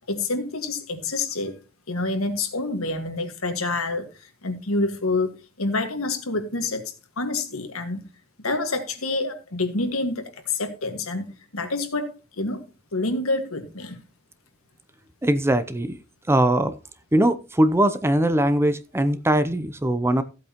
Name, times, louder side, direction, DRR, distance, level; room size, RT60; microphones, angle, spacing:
voice 1, 0.1-1.6 1.9-8.0 8.4-12.6 12.9-14.0, left 2 dB, 75° left, 1.8 m, -27 dB
voice 2, 15.2-16.0 16.3-16.8 17.1-20.2, right 1 dB, 10° right, 0.6 m, -21 dB
15.0 x 8.4 x 2.9 m
head